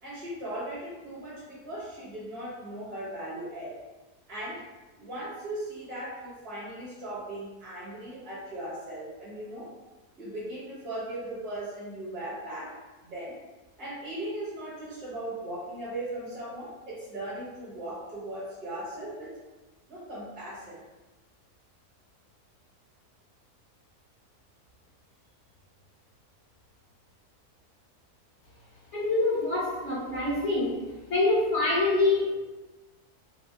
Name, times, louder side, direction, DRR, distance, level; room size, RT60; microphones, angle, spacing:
voice 1, 0.0-3.8 4.3-4.6 5.0-9.7 10.2-13.4 13.8-19.3 19.9-20.8, right 1 dB, 75° right, -7 dB, 2.0 m, -38 dB
voice 2, 28.9-30.8 31.1-32.3, left 2 dB, 55° left, -6 dB, 1.1 m, -25 dB
5.9 x 2.0 x 2.4 m, 1.2 s
omnidirectional pair, 1.6 m